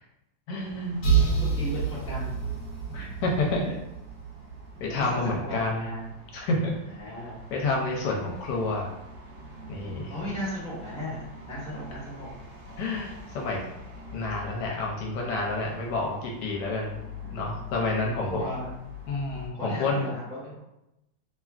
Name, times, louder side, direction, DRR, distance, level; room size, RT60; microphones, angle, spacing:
voice 1, 0.5-1.3 2.9-3.8 4.8-5.9 6.3-6.7 7.5-8.9 9.7-10.1 12.8-13.6 14.1-17.0 17.3-18.4 19.1-20.0, left 2 dB, 75° left, -1 dB, 1.1 m, -29 dB
sound 1, 0.6-19.5, left 2 dB, 75° right, 1.1 m, -45 dB
sound 2, 1.0-4.7, right 6 dB, 50° left, 1.1 m, -27 dB
voice 2, 1.0-2.4 2.9-3.0 4.7-6.0 6.9-7.4 10.1-11.2 11.5-12.3 17.2-17.4 18.1-18.7 19.5-20.6, left 1 dB, 5° left, -9 dB, 0.7 m, -36 dB
3.0 x 2.3 x 2.3 m, 0.88 s
omnidirectional pair, 1.9 m